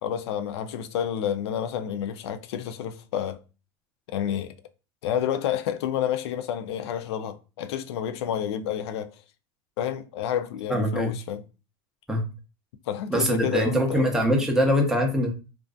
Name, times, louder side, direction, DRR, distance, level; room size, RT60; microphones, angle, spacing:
voice 1, 0.0-3.4 4.1-4.5 5.0-9.2 9.8-11.4 12.9-14.1, left 9 dB, 85° left, 0.4 m, -29 dB
voice 2, 10.7-11.1 12.1-12.3 13.1-15.3, equal, 5° right, 0.6 m, -23 dB
2.5 x 2.3 x 2.3 m
supercardioid pair, 135°, 14 cm